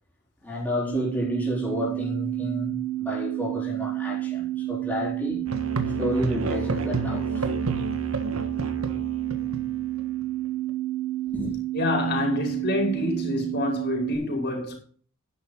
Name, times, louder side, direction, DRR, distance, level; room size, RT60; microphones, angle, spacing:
voice 1, 0.4-5.4 5.9-7.5 11.3-11.5, left 1 dB, 10° left, 4.1 m, -31 dB
sound 1, 0.9-14.1, right 16 dB, 75° left, 3.8 m, -30 dB
Musical instrument, 5.5-10.3, right 2 dB, 90° right, 1.7 m, -31 dB
voice 2, 11.7-14.8, left 2 dB, 50° left, 5.4 m, -27 dB
11.5 x 10.5 x 4.0 m
head